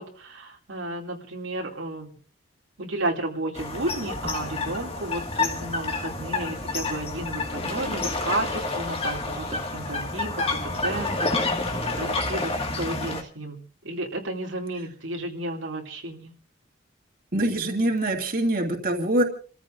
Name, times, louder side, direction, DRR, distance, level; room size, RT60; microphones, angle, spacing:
voice 1, 0.0-2.1 2.8-11.5 11.9-16.3, right 2 dB, 80° right, 0 dB, 2.6 m, -32 dB
sound 1, 3.6-13.2, left 3 dB, 30° left, 1.9 m, -29 dB
voice 2, 17.3-19.2, right 1 dB, 45° right, 1 dB, 2.4 m, -24 dB
30.0 x 14.5 x 2.6 m, 0.42 s
head